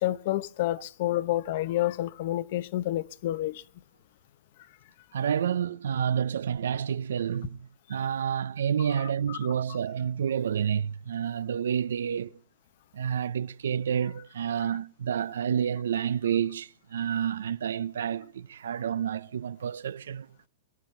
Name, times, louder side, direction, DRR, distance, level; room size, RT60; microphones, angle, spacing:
voice 1, 0.0-3.5 9.3-9.4, left 14 dB, 45° left, 0.9 m, -29 dB
voice 2, 5.1-12.4 12.9-20.3, right 8 dB, 90° right, 0.7 m, -29 dB
24.0 x 11.0 x 4.5 m
hypercardioid pair, 165°, 0 cm